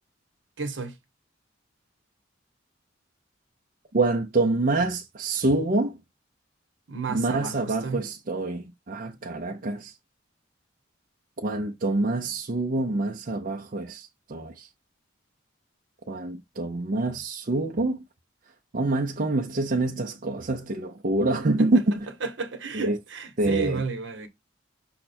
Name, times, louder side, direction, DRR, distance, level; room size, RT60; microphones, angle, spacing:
voice 1, 0.6-1.0 6.9-8.0 21.6-21.7 22.2-24.3, right 4 dB, 70° right, 1.0 m, -32 dB
voice 2, 3.9-5.9 7.1-9.9 11.4-14.7 16.1-18.0 18.7-21.8 22.7-23.0 23.4-23.8, right 2 dB, 45° right, 0.6 m, -26 dB
5.7 x 2.2 x 4.2 m
head